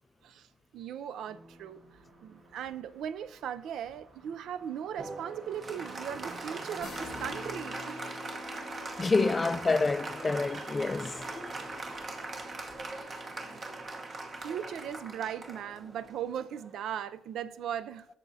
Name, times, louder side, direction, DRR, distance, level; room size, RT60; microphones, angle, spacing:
voice 1, 0.7-1.8 2.2-8.0 9.0-9.1 13.5-13.6 14.4-18.1, right 9 dB, 75° right, 0.4 m, -38 dB
sound 1, 1.3-15.3 16.0-16.1, right 2 dB, 60° right, 1.7 m, -52 dB
Applause, 5.0-16.9, right 3 dB, 40° right, 1.0 m, -41 dB
sound 2, 6.8-16.4, left 4 dB, 70° left, 0.8 m, -50 dB
voice 2, 9.0-11.5, left 3 dB, 25° left, 0.3 m, -28 dB
12.5 x 6.8 x 2.7 m
cardioid pair, 90°, 0 cm